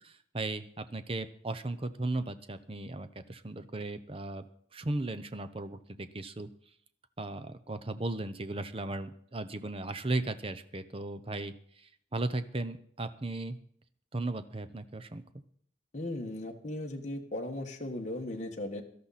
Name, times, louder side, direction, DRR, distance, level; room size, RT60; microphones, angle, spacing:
voice 1, 0.0-4.5 4.7-6.5 7.2-13.6 14.1-15.2, right 2 dB, 30° right, 11 dB, 0.8 m, -36 dB
voice 2, 15.9-18.8, left 1 dB, 35° left, 1 dB, 1.4 m, -37 dB
17.5 x 13.0 x 4.2 m, 0.64 s
head